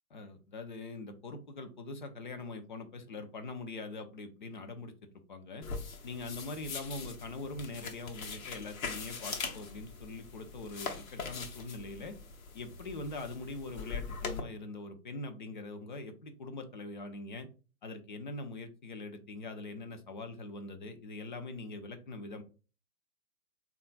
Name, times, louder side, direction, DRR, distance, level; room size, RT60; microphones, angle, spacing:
voice 1, 0.1-4.9 5.3-5.7 6.0-12.2 12.5-17.5 17.8-22.4, left 3 dB, 35° left, 7 dB, 0.4 m, -43 dB
sound 1, 5.6-14.4, left 5 dB, 65° left, 0.9 m, -42 dB
3.5 x 2.3 x 3.8 m, 0.35 s
figure-of-eight pair, 120°, 44 cm